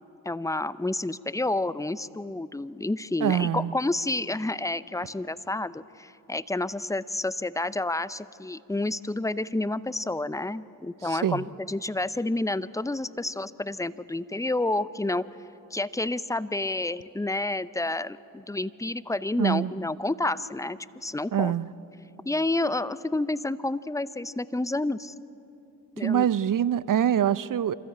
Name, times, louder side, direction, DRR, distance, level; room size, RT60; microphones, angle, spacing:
voice 1, 0.2-15.2 15.7-21.5 22.2-25.1 26.0-26.3, left 2 dB, 10° left, 17 dB, 0.7 m, -29 dB
voice 2, 3.2-3.7 11.1-11.4 19.4-19.7 21.3-21.7 26.0-27.7, right 9 dB, 50° right, 18 dB, 0.7 m, -24 dB
26.0 x 14.0 x 8.8 m, 2.8 s
hypercardioid pair, 40°, 42 cm